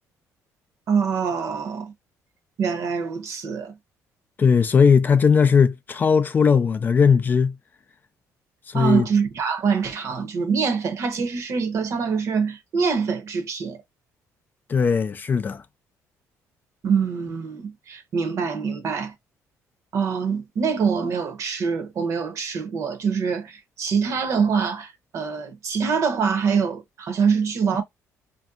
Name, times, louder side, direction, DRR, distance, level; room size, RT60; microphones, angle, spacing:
voice 1, 0.9-1.9 2.6-3.7 8.7-13.8 16.8-19.1 19.9-27.8, right 6 dB, 55° right, 0.8 m, -24 dB
voice 2, 4.4-7.5 8.7-9.1 14.7-15.6, left 6 dB, 30° left, 0.3 m, -18 dB
3.3 x 2.6 x 2.3 m
cardioid pair, 120°, 6 cm